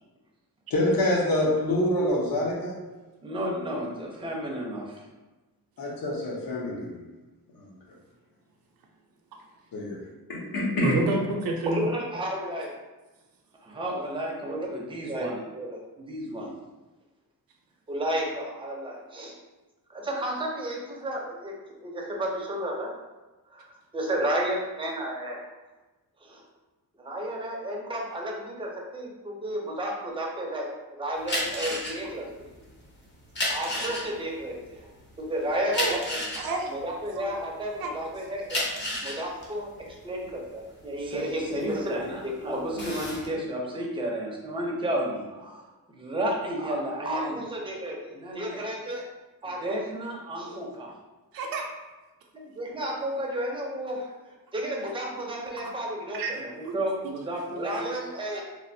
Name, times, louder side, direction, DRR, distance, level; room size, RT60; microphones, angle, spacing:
voice 1, 0.7-2.8 5.8-7.0 7.5-7.7 9.7-10.0 10.3-11.0, left 1 dB, 75° left, -2 dB, 0.9 m, -26 dB
voice 2, 3.2-5.0 11.7-12.7 13.6-16.5 17.9-19.3 19.9-21.5 21.8-22.9 23.5-23.6 23.9-25.4 26.2-26.4 27.0-32.3 33.5-34.9 35.2-36.2 36.7-38.6 39.0-45.7 45.9-49.0 49.4-50.9 52.3-58.4, right 1 dB, 15° right, -2 dB, 0.4 m, -32 dB
voice 3, 10.8-11.9 35.7-36.0 36.3-36.7 37.2-37.4 37.8-37.9 42.7-42.8 50.5-50.6 51.3-51.7 55.6-55.7 56.1-56.3 56.6-56.8, right 3 dB, 85° right, 2 dB, 0.5 m, -29 dB
sound 1, 31.2-37.8 38.3-42.1 42.5-43.3, left 1 dB, 30° left, 0.6 m, -32 dB
3.2 x 2.4 x 2.6 m, 1.1 s
wide cardioid pair, 170°, 35 cm